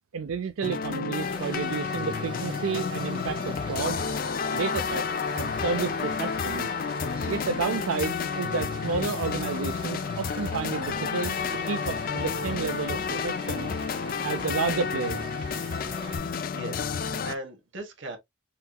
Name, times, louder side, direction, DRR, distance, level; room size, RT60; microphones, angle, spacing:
voice 1, 0.1-4.0 4.5-6.8 7.3-11.4 11.7-13.7 14.2-15.3, right 5 dB, 85° right, 0.4 m, -31 dB
sound 1, 0.6-17.3, left 5 dB, 45° left, 0.3 m, -31 dB
Stream, 1.2-16.2, right 2 dB, 25° right, 1.0 m, -43 dB
voice 2, 16.5-18.2, right 1 dB, 65° right, 1.4 m, -38 dB
5.6 x 2.9 x 2.3 m
head